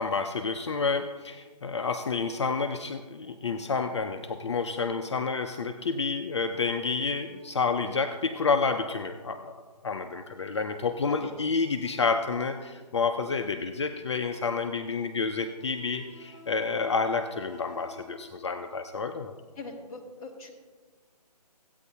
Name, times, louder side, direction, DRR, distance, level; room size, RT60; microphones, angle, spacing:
voice 1, 0.0-9.6 9.8-19.3, left 4 dB, 45° left, 6 dB, 0.5 m, -29 dB
sound 1, 6.3-8.7 10.3-12.6 14.3-18.3, equal, 30° left, 3.0 m, -53 dB
voice 2, 19.5-20.5, left 3 dB, 10° left, -2 dB, 1.0 m, -41 dB
15.0 x 9.0 x 2.8 m, 1.4 s
figure-of-eight pair, 160°, 21 cm